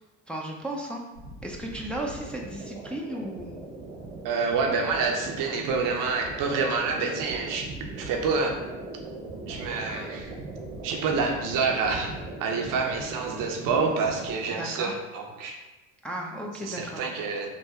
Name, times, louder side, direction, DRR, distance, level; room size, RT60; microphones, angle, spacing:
voice 1, 0.3-1.0 1.4-3.6 14.5-14.9 16.0-17.0, right 1 dB, 5° left, -2 dB, 0.7 m, -35 dB
sound 1, 1.1-14.3, right 2 dB, 90° right, 1.2 m, -40 dB
voice 2, 4.2-7.7 8.0-8.6 9.5-10.3 10.8-12.1 12.4-15.6 16.6-17.5, right 4 dB, 55° right, 2 dB, 0.8 m, -27 dB
3.5 x 2.7 x 4.3 m, 1.1 s
hypercardioid pair, 70°, 39 cm